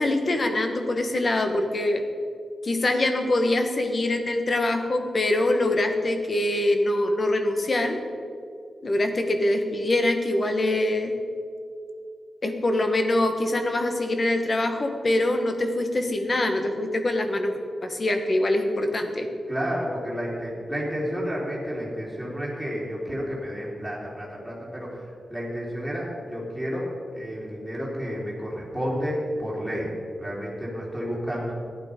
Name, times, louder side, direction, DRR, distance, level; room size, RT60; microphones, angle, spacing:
voice 1, 0.0-2.0 2.6-8.0 8.8-11.1 12.4-19.3, left 1 dB, 35° left, 6 dB, 1.3 m, -24 dB
voice 2, 19.5-26.9 27.1-29.9 30.2-31.5, equal, ahead, -6 dB, 3.5 m, -31 dB
15.0 x 11.5 x 5.2 m, 2.4 s
wide cardioid pair, 170°, 0 cm